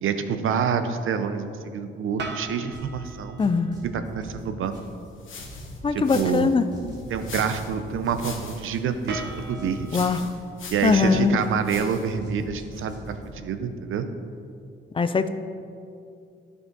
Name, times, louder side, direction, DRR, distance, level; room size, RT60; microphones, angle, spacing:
voice 1, 0.0-3.4 3.9-4.8 5.9-6.5 7.1-10.1 10.7-14.1, right 6 dB, 90° right, 9 dB, 0.6 m, -27 dB
sound 1, 2.2-4.2 9.1-12.2, right 2 dB, 60° right, 1.0 m, -40 dB
sound 2, 2.7-3.1 3.4-5.1 5.4-6.4 6.7-8.4 8.7-10.4 10.7-11.8 12.0-13.3, equal, 20° right, 2.0 m, -42 dB
voice 2, 3.4-3.7 5.8-6.7 9.9-10.3 10.8-11.4 14.9-15.3, left 5 dB, 25° left, 10 dB, 0.4 m, -21 dB
sound 3, 4.8-12.2, left 5 dB, 80° left, 1.3 m, -43 dB
13.5 x 5.6 x 4.0 m, 2.5 s
wide cardioid pair, 150°, 20 cm